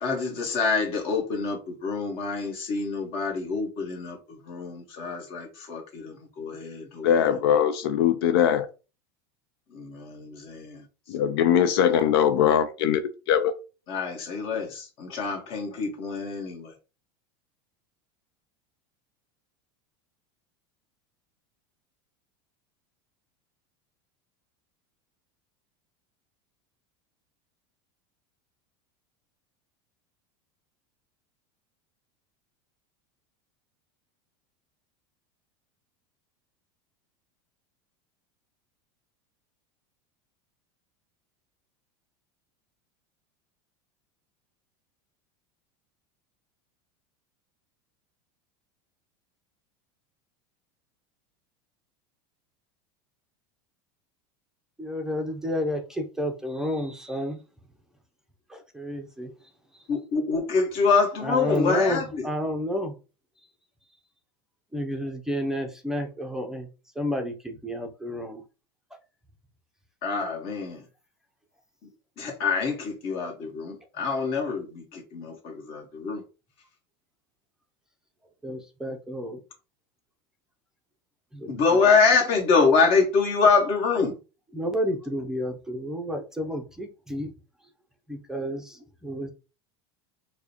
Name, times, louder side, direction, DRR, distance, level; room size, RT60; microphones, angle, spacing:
voice 1, 0.0-4.2 4.5-7.1 9.8-10.7 13.9-14.7 15.0-16.7 59.9-62.0 70.0-70.8 72.2-74.7 74.9-75.3 75.7-76.2 81.5-84.1, left 4 dB, 50° left, 1.4 m, -25 dB
voice 2, 7.0-8.7 11.1-13.0 13.3-13.5, left 9 dB, 80° left, 0.4 m, -21 dB
voice 3, 54.8-57.4 58.5-59.3 61.2-62.9 64.7-66.7 67.0-68.4 78.4-79.4 81.3-81.9 84.5-87.3 88.1-89.3, equal, 5° right, 0.5 m, -31 dB
4.7 x 2.2 x 2.8 m
supercardioid pair, 130°, 12 cm